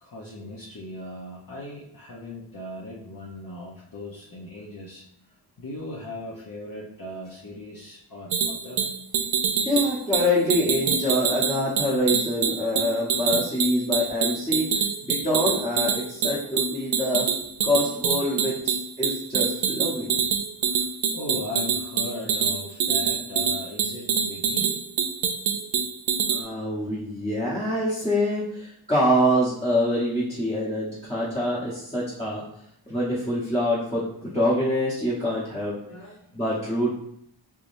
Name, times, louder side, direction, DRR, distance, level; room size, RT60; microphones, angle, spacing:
voice 1, 0.0-5.1 5.6-8.8 20.6-20.9 21.1-24.8 35.9-36.3, left 2 dB, 45° left, -6 dB, 0.8 m, -38 dB
sound 1, 8.3-26.4, right 7 dB, 80° right, 0.5 m, -25 dB
voice 2, 9.6-14.7 15.0-17.3 17.6-20.2 26.3-32.4 32.9-35.8 36.3-36.9, left 1 dB, 10° left, -9 dB, 1.0 m, -25 dB
3.5 x 3.0 x 2.6 m, 0.73 s
wide cardioid pair, 55°, 48 cm